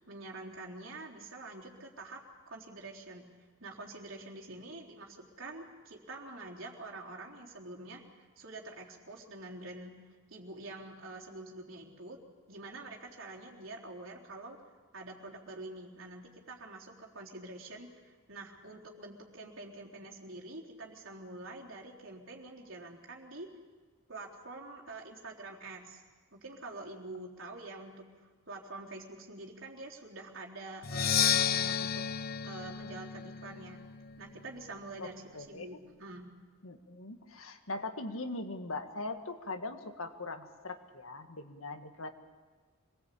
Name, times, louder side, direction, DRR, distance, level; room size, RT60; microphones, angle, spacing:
voice 1, 0.0-2.2 2.5-3.3 3.6-10.0 10.3-12.2 12.5-14.6 14.9-23.5 24.1-26.0 26.3-32.0 32.4-33.8 34.2-36.3, right 2 dB, 70° right, -2 dB, 3.8 m, -46 dB
Percussion, 30.8-34.6, left 8 dB, 45° left, 0.7 m, -32 dB
voice 2, 35.3-35.7 36.6-42.1, left 2 dB, 85° left, 7 dB, 1.9 m, -40 dB
26.0 x 20.0 x 8.5 m, 1.4 s
head